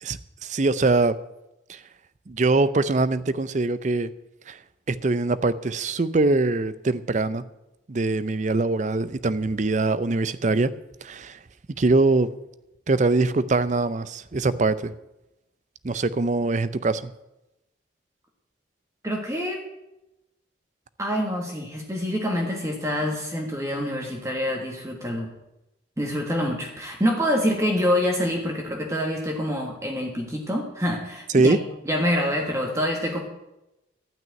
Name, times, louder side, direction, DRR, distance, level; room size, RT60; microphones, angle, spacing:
voice 1, 0.0-1.2 1.7-1.8 2.3-4.1 4.5-4.6 4.9-7.4 7.9-10.7 11.0-11.4 11.8-12.3 12.9-14.9 15.8-17.1 31.3-31.6, right 3 dB, 40° right, 15 dB, 0.5 m, -23 dB
voice 2, 19.0-19.6 21.0-25.3 26.0-31.6 31.8-33.2, equal, 15° right, 0 dB, 1.6 m, -26 dB
12.0 x 6.1 x 9.1 m, 0.94 s
head